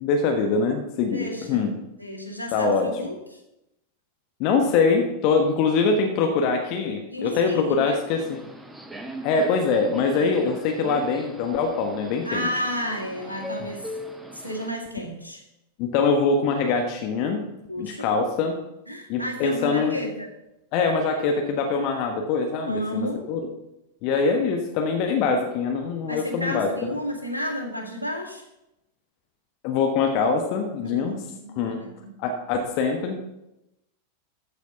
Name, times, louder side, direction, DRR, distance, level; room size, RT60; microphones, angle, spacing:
voice 1, 0.0-1.7 2.5-2.9 4.4-8.4 9.2-12.5 15.8-17.4 17.8-18.5 19.1-20.0 20.7-23.4 24.0-26.7 29.6-31.2 31.5-31.8 32.2-33.2, left 4 dB, 45° left, 4 dB, 1.3 m, -23 dB
voice 2, 1.1-1.7 2.0-3.2 7.1-8.0 12.2-13.9 14.3-15.4 17.7-18.1 18.9-20.3 22.6-23.3 26.1-28.5 30.8-32.2, equal, 85° right, 1 dB, 2.1 m, -32 dB
Subway metro underground, 8.1-14.7, equal, 10° right, 1.2 m, -39 dB
13.5 x 5.0 x 6.9 m, 0.90 s
figure-of-eight pair, 90°, 0 cm